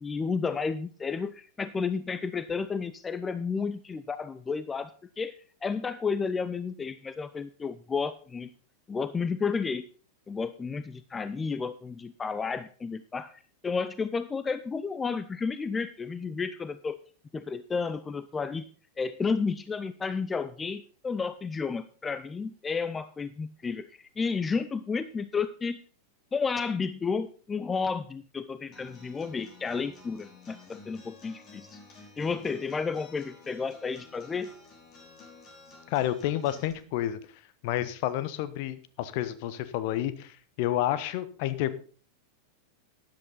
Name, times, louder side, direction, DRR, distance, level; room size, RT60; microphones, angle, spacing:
voice 1, 0.0-5.3 5.6-8.5 8.9-9.8 10.3-17.0 17.3-18.7 19.0-25.8 26.3-31.8 32.2-34.5, left 5 dB, 15° left, 13 dB, 0.6 m, -32 dB
Acoustic guitar, 28.7-36.7, left 4 dB, 30° left, 5.1 m, -52 dB
voice 2, 35.9-37.2 37.6-41.7, left 13 dB, 45° left, 13 dB, 1.2 m, -30 dB
13.0 x 10.5 x 4.0 m, 0.40 s
figure-of-eight pair, 90°, 0 cm